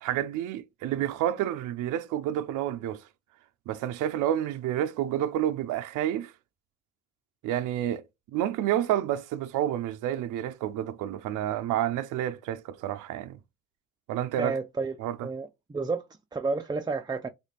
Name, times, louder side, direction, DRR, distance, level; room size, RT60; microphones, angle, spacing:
voice 1, 0.0-3.0 3.7-6.3 7.4-8.0 8.3-13.4 14.1-14.6 15.0-15.3, right 11 dB, 85° right, 0.5 m, -29 dB
voice 2, 14.4-15.0 15.2-16.0 16.3-17.3, right 4 dB, 15° right, 0.3 m, -31 dB
3.2 x 2.4 x 3.2 m
cardioid pair, 90°, 30 cm